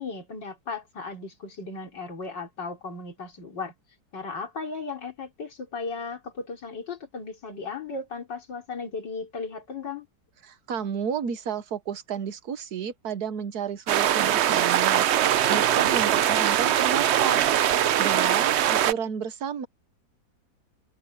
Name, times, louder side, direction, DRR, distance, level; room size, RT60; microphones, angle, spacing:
voice 1, 0.0-3.7 4.1-10.1, left 4 dB, 85° left, 4.3 m, -36 dB
voice 2, 10.4-17.4 18.0-19.7, right 7 dB, 65° right, 1.5 m, -32 dB
sound 1, 13.9-18.9, right 11 dB, 90° right, 0.5 m, -22 dB
omnidirectional pair, 1.9 m